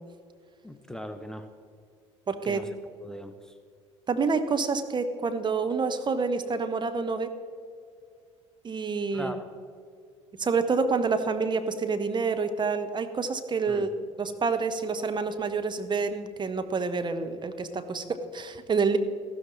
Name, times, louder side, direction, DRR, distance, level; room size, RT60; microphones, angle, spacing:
voice 1, 0.6-1.5 2.4-2.7 3.0-3.5 9.1-9.4 13.7-13.9, equal, 5° left, 8 dB, 0.9 m, -39 dB
voice 2, 2.3-2.6 4.1-7.3 8.6-9.4 10.4-13.9 14.2-19.0, right 4 dB, 30° right, 8 dB, 1.1 m, -28 dB
14.5 x 13.0 x 4.0 m, 2.3 s
figure-of-eight pair, 60°, 16 cm